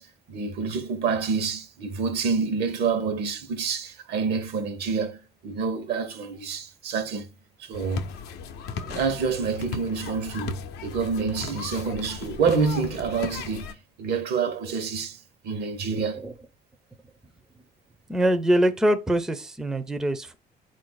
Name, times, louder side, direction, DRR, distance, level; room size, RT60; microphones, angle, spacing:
voice 1, 0.0-7.3 7.6-8.1 8.8-16.2, right 5 dB, 75° right, 0.9 m, -28 dB
sound 1, 7.7-13.7, left 6 dB, 85° left, 0.6 m, -37 dB
voice 2, 18.1-20.3, right 1 dB, 5° right, 0.4 m, -23 dB
4.1 x 2.5 x 3.8 m
cardioid pair, 110°, 17 cm